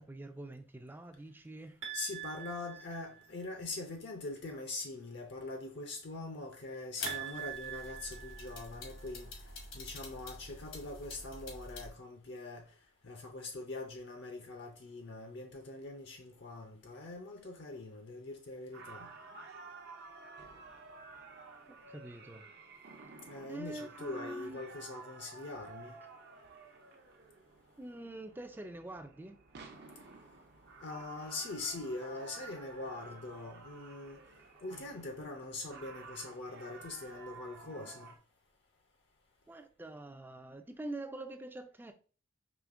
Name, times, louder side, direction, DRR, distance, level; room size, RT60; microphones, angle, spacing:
voice 1, 0.0-1.8 21.7-22.5 23.5-24.7 27.8-29.4 39.5-41.9, right 2 dB, 10° right, 0.3 m, -45 dB
sound 1, 1.8-3.5 7.1-9.1, right 11 dB, 75° right, 1.1 m, -44 dB
voice 2, 1.9-9.3 9.7-12.6 13.0-19.1 23.2-26.0 30.8-34.2 34.6-38.1, left 2 dB, 55° left, 0.5 m, -43 dB
sound 2, 7.0-11.9, left 3 dB, 75° left, 1.1 m, -46 dB
sound 3, 18.7-38.2, right 4 dB, 50° right, 0.6 m, -52 dB
5.0 x 2.9 x 2.5 m
head